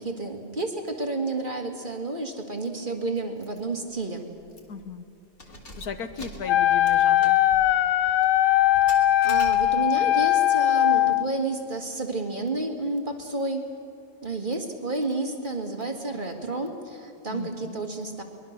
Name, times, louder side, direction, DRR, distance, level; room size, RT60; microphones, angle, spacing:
voice 1, 0.0-4.3 8.9-13.7 14.2-18.2, right 2 dB, 30° right, 2 dB, 2.0 m, -31 dB
Keys jangling, 3.4-3.6 3.9-4.0 4.5-4.9 5.3-10.0, equal, 35° left, 2.5 m, -44 dB
voice 2, 4.7-5.0 5.8-7.4 17.3-17.8, left 6 dB, 65° left, 9 dB, 1.5 m, -36 dB
Wind instrument woodwind instrument, 6.5-11.3, left 13 dB, 85° left, 1.3 m, -20 dB
23.0 x 21.5 x 6.6 m, 2.8 s
omnidirectional pair, 1.8 m